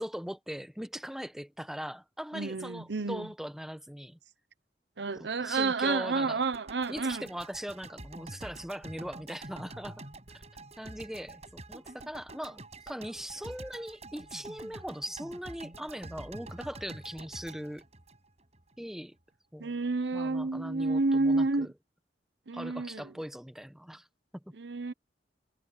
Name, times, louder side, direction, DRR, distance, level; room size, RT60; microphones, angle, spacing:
voice 1, 0.0-4.2 5.1-6.4 6.9-10.1 10.8-17.8 18.8-19.1 19.5-19.7 20.1-21.7 22.5-24.1 24.3-24.5, equal, 5° right, 1.2 m, -40 dB
voice 2, 2.3-3.3 5.0-7.3 19.6-21.7 22.5-23.1 24.6-24.9, right 3 dB, 75° right, 0.9 m, -30 dB
sound 1, 6.5-18.7, right 2 dB, 40° right, 6.6 m, -47 dB
head